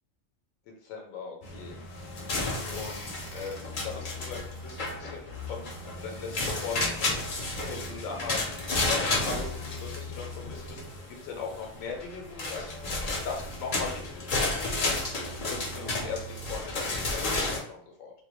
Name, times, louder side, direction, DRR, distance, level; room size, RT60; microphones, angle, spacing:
voice 1, 0.7-5.7 6.0-10.9 11.2-12.7 13.2-14.9 15.4-18.1, left 5 dB, 80° left, 1 dB, 1.0 m, -39 dB
sound 1, 1.4-17.6, left 2 dB, 55° left, 0.6 m, -32 dB
2.4 x 2.1 x 2.9 m, 0.65 s
omnidirectional pair, 1.4 m